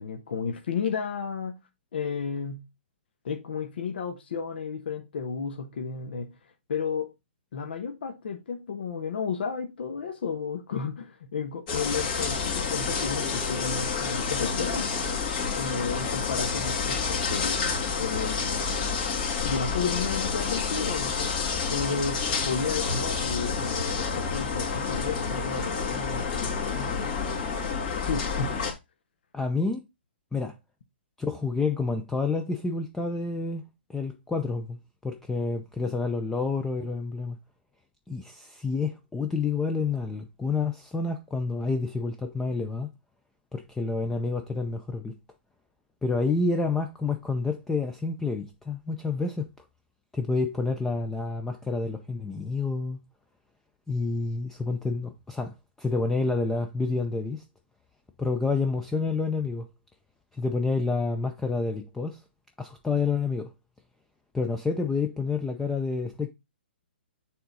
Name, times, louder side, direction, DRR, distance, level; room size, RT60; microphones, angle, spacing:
voice 1, 0.0-1.6 1.9-2.6 3.2-6.3 6.7-7.1 7.5-14.9 15.5-17.6 18.0-18.6 19.4-21.3 21.7-27.1 28.0-28.6, left 5 dB, 65° left, 1.1 m, -32 dB
sound 1, 11.7-28.7, left 5 dB, 45° left, 2.3 m, -29 dB
voice 2, 29.3-29.8 30.3-30.5 31.2-33.6 33.9-37.4 38.1-42.9 43.5-45.2 46.0-49.5 50.1-53.0 53.9-57.4 58.2-59.7 60.4-62.2 62.6-63.5 64.3-66.3, left 4 dB, 5° left, 0.5 m, -29 dB
6.8 x 3.8 x 4.0 m
hypercardioid pair, 135°, 6 cm